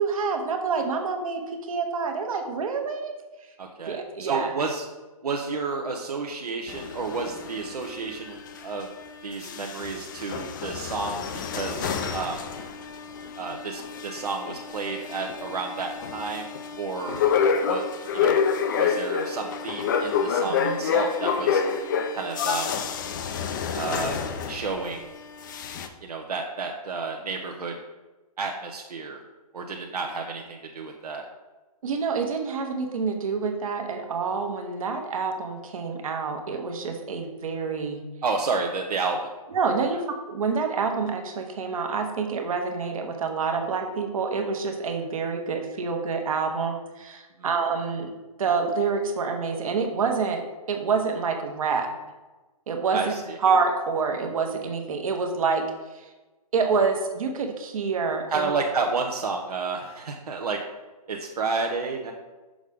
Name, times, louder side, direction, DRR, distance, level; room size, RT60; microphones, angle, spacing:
voice 1, 0.0-3.2 3.9-4.5 20.4-20.8 31.8-38.0 39.5-48.1 48.4-50.4 50.7-51.9 52.7-53.1 53.4-55.6 56.5-58.5, right 5 dB, 60° right, 4 dB, 1.1 m, -27 dB
voice 2, 3.6-4.8 5.2-8.9 9.2-12.4 13.4-17.2 17.7-17.8 18.1-18.4 18.8-21.6 22.1-22.7 23.7-24.2 24.5-25.1 26.0-27.7 28.4-29.2 29.5-31.2 38.2-39.2 52.9-53.4 58.3-60.6 61.1-62.1, right 4 dB, 80° right, 1 dB, 0.8 m, -31 dB
sound 1, 6.7-9.0 9.3-25.0 25.4-25.9, left 6 dB, 30° left, 0.4 m, -28 dB
6.2 x 5.1 x 3.5 m, 1.2 s
hypercardioid pair, 150°, 20 cm